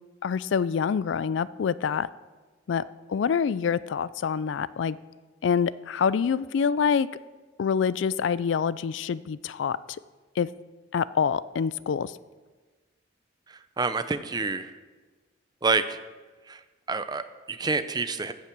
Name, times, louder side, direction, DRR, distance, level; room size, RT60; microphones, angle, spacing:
voice 1, 0.2-2.1 2.7-2.8 3.1-5.0 5.4-7.1 7.6-9.8 10.4-10.5 10.9-12.1, left 6 dB, 70° left, 18 dB, 0.3 m, -26 dB
voice 2, 13.5-14.7 15.6-16.0 16.5-16.6 16.9-18.3, right 4 dB, 20° right, 11 dB, 0.5 m, -28 dB
15.0 x 5.8 x 6.0 m, 1.3 s
head